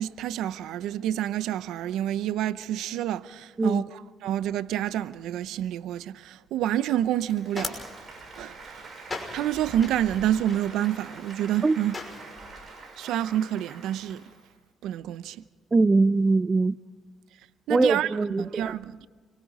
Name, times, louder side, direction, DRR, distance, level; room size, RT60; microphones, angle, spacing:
voice 1, 0.0-7.8 8.4-8.5 9.3-11.9 13.0-14.2 14.8-15.4 17.7-19.1, right 11 dB, 90° right, 0.7 m, -28 dB
sound 1, 6.9-12.5, left 3 dB, 25° left, 5.9 m, -40 dB
Applause, 7.1-14.5, right 4 dB, 45° right, 7.6 m, -45 dB
voice 2, 15.7-16.8 17.7-18.7, right 3 dB, 25° right, 0.6 m, -22 dB
28.5 x 23.5 x 4.2 m
cardioid pair, 90°, 0 cm